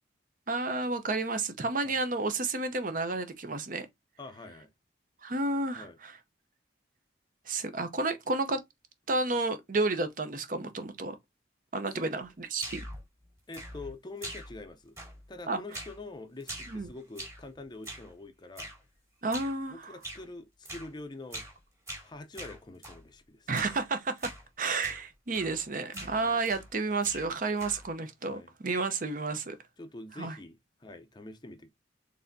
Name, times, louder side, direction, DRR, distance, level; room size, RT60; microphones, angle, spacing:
voice 1, 0.5-3.9 5.2-6.1 7.5-8.6 9.1-11.2 11.7-12.8 15.5-15.6 16.7-16.9 19.2-19.9 23.5-24.3 24.6-29.6 30.2-30.4, right 3 dB, 45° right, 0.7 m, -31 dB
voice 2, 4.2-4.7 5.8-6.0 11.9-12.1 13.5-15.0 15.3-18.7 19.7-21.4 22.0-23.5 26.2-26.4 28.3-28.5 29.8-31.7, left 2 dB, 25° left, 0.5 m, -45 dB
sound 1, 12.6-13.0 13.5-13.9 14.2-14.7 15.0-15.3 15.7-16.0 16.4-17.5 17.8-18.1 18.6-18.8 19.3-19.6 20.0-20.3 20.6-20.9 21.3-21.6 21.9-23.0 23.5-23.8 24.2-24.4 24.8-25.0 25.3-25.6 25.9-26.7 27.0-27.9, right 1 dB, 15° right, 1.6 m, -43 dB
4.1 x 3.4 x 2.6 m
head